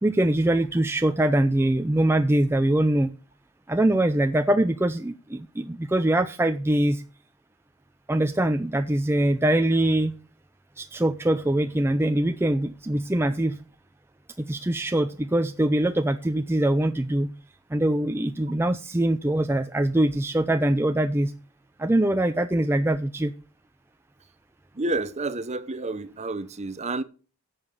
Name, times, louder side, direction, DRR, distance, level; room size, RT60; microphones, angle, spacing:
voice 1, 0.0-3.1 3.7-7.0 8.1-10.1 10.8-13.6 14.5-17.3 17.7-21.3 21.8-23.3, right 1 dB, 10° right, 0.4 m, -23 dB
voice 2, 24.7-27.0, right 2 dB, 30° right, 0.8 m, -30 dB
11.0 x 7.2 x 6.5 m
head